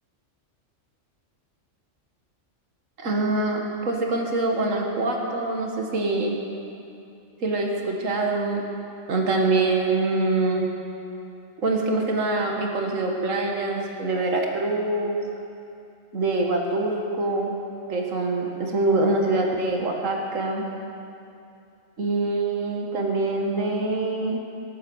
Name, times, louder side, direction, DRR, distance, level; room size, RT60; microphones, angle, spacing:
voice 1, 3.0-6.3 7.4-8.6 9.1-10.7 11.6-15.2 16.1-17.5 17.9-20.6 22.0-24.4, right 2 dB, 85° right, 1 dB, 2.0 m, -24 dB
19.0 x 8.7 x 7.1 m, 2.6 s
omnidirectional pair, 1.3 m